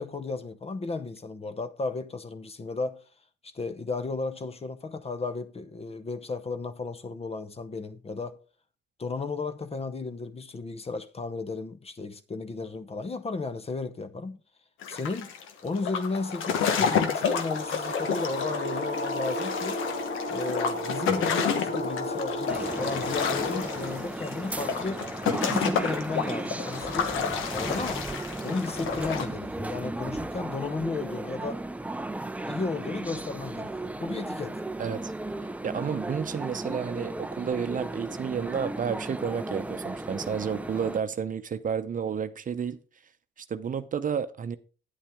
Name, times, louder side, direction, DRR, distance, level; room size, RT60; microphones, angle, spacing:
voice 1, 0.0-3.0 3.4-8.4 9.0-14.4 14.9-15.3 15.6-19.8 20.3-25.1 25.4-28.0 28.4-31.6 32.4-34.6, left 3 dB, 30° left, 0.9 m, -34 dB
sound 1, 14.8-29.3, left 7 dB, 90° left, 1.1 m, -30 dB
rise two pulse one, 15.8-24.1, left 1 dB, 55° left, 1.6 m, -34 dB
sound 2, 22.5-41.0, right 2 dB, 5° right, 0.5 m, -35 dB
voice 2, 34.8-35.1 35.6-42.8 43.4-44.6, right 7 dB, 40° right, 0.7 m, -31 dB
9.5 x 8.7 x 3.6 m
cardioid pair, 90°, 20 cm